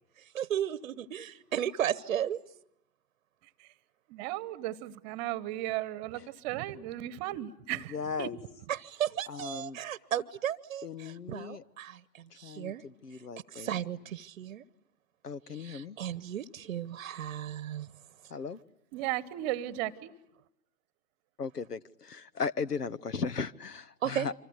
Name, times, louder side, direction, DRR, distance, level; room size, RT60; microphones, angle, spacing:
voice 1, 0.2-2.4 8.7-12.8 13.1-13.2 13.5-14.6 15.5-17.9 24.0-24.3, right 10 dB, 55° right, 1.0 m, -35 dB
voice 2, 4.1-8.4 18.9-20.1, right 14 dB, 30° right, 1.2 m, -35 dB
voice 3, 7.9-8.3 9.3-9.8 10.8-11.6 12.4-13.7 15.2-16.0 18.3-18.6 21.4-24.3, left 5 dB, 85° left, 1.2 m, -37 dB
29.0 x 25.0 x 8.1 m
figure-of-eight pair, 125°, 46 cm